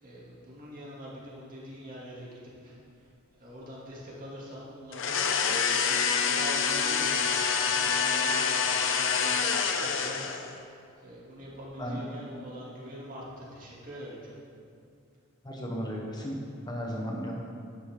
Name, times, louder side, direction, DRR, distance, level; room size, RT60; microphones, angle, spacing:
voice 1, 0.0-3.1 3.4-10.7 11.0-14.4, equal, 40° right, -6 dB, 2.6 m, -44 dB
sound 1, 4.9-10.5, left 6 dB, 65° left, 0.8 m, -27 dB
voice 2, 15.4-16.4 16.7-17.3, equal, 20° left, -2 dB, 1.0 m, -34 dB
11.0 x 9.7 x 3.7 m, 2.4 s
head